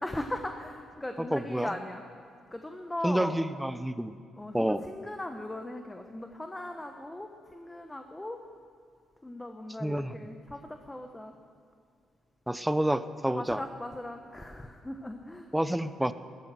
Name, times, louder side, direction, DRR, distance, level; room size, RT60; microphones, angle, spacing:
voice 1, 0.0-2.0 2.5-3.4 4.4-8.4 9.2-11.4 13.4-15.5, left 1 dB, 10° left, 5 dB, 1.0 m, -38 dB
voice 2, 1.2-1.7 3.0-4.2 4.5-4.8 9.8-10.2 12.5-13.6 15.5-16.1, right 1 dB, 5° right, 12 dB, 0.6 m, -29 dB
14.0 x 13.5 x 7.6 m, 2.3 s
cardioid pair, 90°, 0 cm